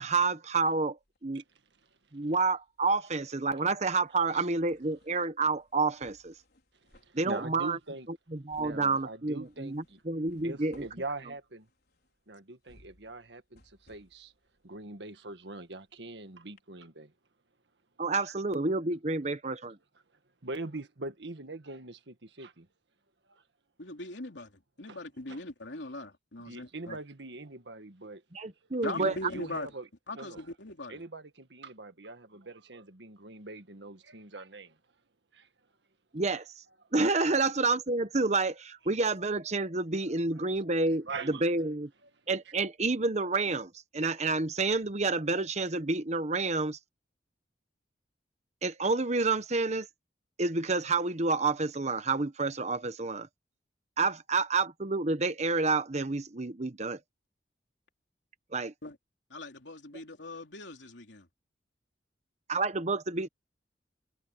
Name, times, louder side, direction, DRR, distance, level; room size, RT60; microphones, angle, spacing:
voice 1, 0.0-1.4 2.1-6.3 7.1-7.8 8.3-10.8 18.0-19.8 28.3-29.1 36.1-36.6 36.9-41.9 42.3-46.8 48.6-49.9 50.4-53.3 54.0-57.0 58.5-58.7 62.5-63.3, right 3 dB, 40° right, 1.1 m, -29 dB
sound 1, 1.0-2.1 2.4-16.2 16.6-16.7, left 1 dB, 60° left, 5.5 m, -64 dB
voice 2, 6.9-8.1 8.6-10.0 10.4-11.7 12.3-14.3 14.6-17.1 18.3-18.4 20.4-22.7 23.2-23.4 24.9-25.0 25.3-25.4 26.4-28.2 28.6-29.9 30.1-30.5 30.9-34.8 35.3-35.5 40.1-40.2 41.0-41.5, right 2 dB, 75° right, 1.8 m, -43 dB
voice 3, 23.8-27.0 28.8-29.7 30.1-31.0 58.8-59.0 59.3-61.3, left 2 dB, 90° left, 3.2 m, -40 dB
head